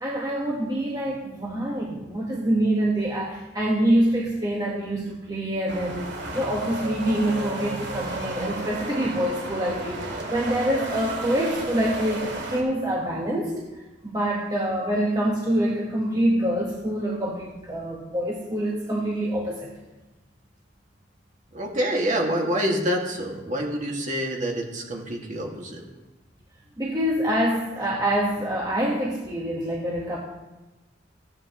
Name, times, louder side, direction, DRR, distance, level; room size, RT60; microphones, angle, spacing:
voice 1, 0.0-6.1 6.3-13.6 14.0-19.7 26.8-30.2, right 1 dB, 20° right, -4 dB, 1.5 m, -25 dB
sound 1, 5.7-12.6, right 2 dB, 65° right, 2.4 m, -33 dB
voice 2, 21.5-25.8, equal, 40° right, 0 dB, 2.1 m, -27 dB
16.0 x 9.6 x 3.1 m, 1.1 s
head